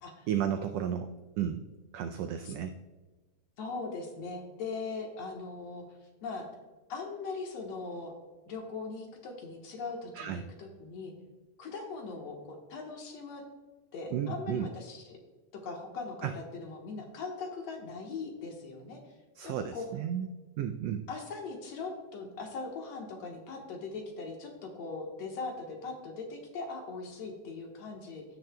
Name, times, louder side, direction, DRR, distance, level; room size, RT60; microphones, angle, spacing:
voice 1, 0.3-1.1 1.4-1.6 1.9-2.7 10.1-10.5 14.1-14.7 16.2-16.3 19.4-20.3 20.6-21.1, right 9 dB, 85° right, 7 dB, 1.4 m, -33 dB
voice 2, 3.6-5.9 6.2-6.5 6.9-8.1 8.5-11.1 11.6-13.4 13.9-15.2 15.6-19.2 19.4-19.9 21.1-28.2, left 4 dB, 65° left, 1 dB, 2.3 m, -40 dB
16.0 x 6.5 x 2.2 m, 1.3 s
omnidirectional pair, 3.5 m